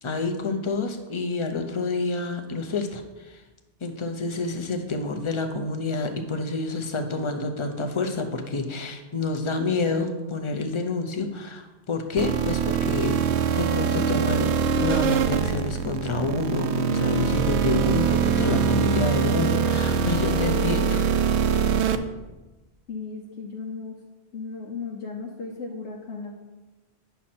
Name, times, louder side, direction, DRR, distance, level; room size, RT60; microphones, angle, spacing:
voice 1, 0.0-3.4 3.8-14.5 14.8-21.1, left 3 dB, 30° left, 5 dB, 0.7 m, -28 dB
sound 1, 12.2-22.0, right 6 dB, 75° right, 0.8 m, -23 dB
voice 2, 22.9-23.9 24.3-26.3, left 4 dB, 90° left, -2 dB, 1.2 m, -35 dB
9.3 x 6.2 x 4.3 m, 1.1 s
omnidirectional pair, 1.2 m